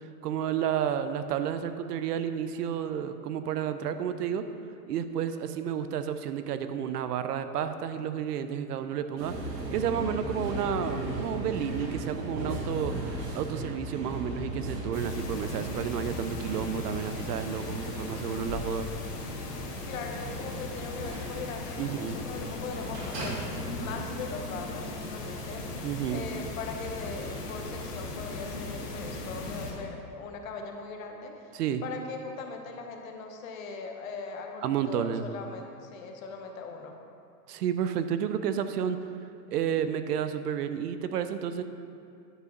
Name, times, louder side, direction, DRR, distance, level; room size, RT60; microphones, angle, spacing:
voice 1, 0.2-4.4 4.9-9.3 9.7-12.9 13.3-18.9 21.8-22.2 25.8-26.2 31.5-31.8 34.6-35.3 37.5-39.0 39.5-41.6, right 8 dB, 70° right, 10 dB, 0.7 m, -31 dB
sound 1, 9.2-24.0, right 1 dB, 90° right, 2.1 m, -38 dB
sound 2, 14.9-29.7, left 2 dB, 75° left, 1.7 m, -38 dB
voice 2, 19.9-23.4 23.8-25.6 26.1-31.4 31.8-37.0, left 4 dB, 55° left, 3 dB, 1.1 m, -40 dB
10.0 x 4.7 x 5.1 m, 2.5 s
supercardioid pair, 170°, 49 cm